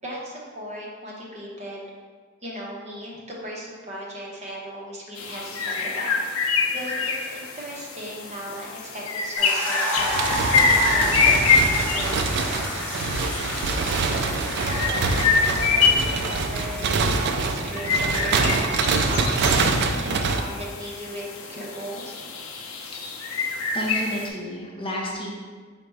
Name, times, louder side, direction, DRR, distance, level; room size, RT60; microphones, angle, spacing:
voice 1, 0.0-1.9 2.4-6.2 6.7-12.8 14.5-18.6 19.1-22.3, equal, 35° right, -4 dB, 0.8 m, -37 dB
sound 1, 5.2-24.3, left 5 dB, 90° left, 0.5 m, -26 dB
sound 2, 9.4-17.5, equal, 10° left, 1.0 m, -30 dB
sound 3, 10.0-20.4, right 4 dB, 55° right, 0.3 m, -25 dB
voice 2, 23.7-25.3, equal, 25° left, -3 dB, 0.6 m, -30 dB
4.8 x 2.1 x 4.5 m, 1.5 s
head